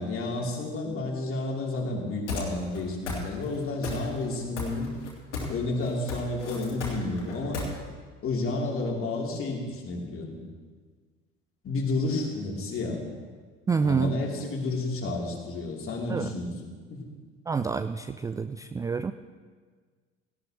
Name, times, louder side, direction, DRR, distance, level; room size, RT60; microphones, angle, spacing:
voice 1, 0.0-4.9 5.5-7.6 8.2-10.4 11.6-13.0 13.8-16.5 16.9-17.0, left 2 dB, 40° left, -1 dB, 3.2 m, -31 dB
sound 1, 2.3-2.8 3.1-3.5 3.8-4.3 4.6-5.6 5.8-7.7, left 4 dB, 75° left, 2.8 m, -34 dB
voice 2, 13.7-14.2 16.1-16.3 17.5-19.1, right 5 dB, 10° right, 11 dB, 0.3 m, -27 dB
17.5 x 16.0 x 3.0 m, 1.5 s
figure-of-eight pair, 60°, 35 cm